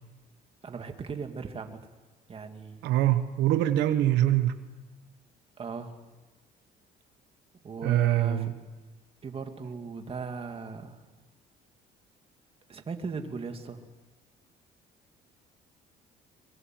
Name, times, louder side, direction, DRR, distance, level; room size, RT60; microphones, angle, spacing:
voice 1, 0.6-1.8 2.3-2.9 5.6-6.0 7.6-8.5 9.2-11.0 12.7-13.8, right 5 dB, 35° right, 6 dB, 2.2 m, -38 dB
voice 2, 2.8-4.6 7.8-8.5, right 13 dB, 85° right, 10 dB, 1.2 m, -24 dB
23.5 x 22.0 x 7.7 m, 1.2 s
cardioid pair, 110°, 17 cm